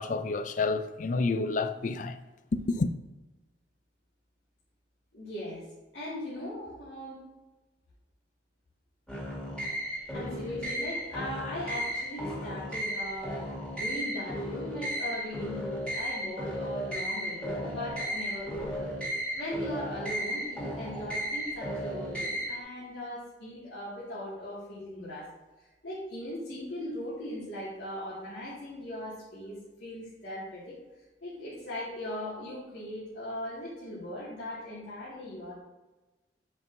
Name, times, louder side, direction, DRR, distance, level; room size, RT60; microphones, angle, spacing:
voice 1, 0.0-2.2 2.5-2.9, left 3 dB, 45° left, 0.4 m, -29 dB
voice 2, 5.1-5.6 5.9-7.2 10.1-13.5 13.7-18.9 19.3-25.3 25.6-30.8 31.2-35.5, left 1 dB, 85° left, 2.0 m, -39 dB
sound 1, 9.1-22.6, equal, 5° left, 2.0 m, -35 dB
8.3 x 5.3 x 2.6 m
head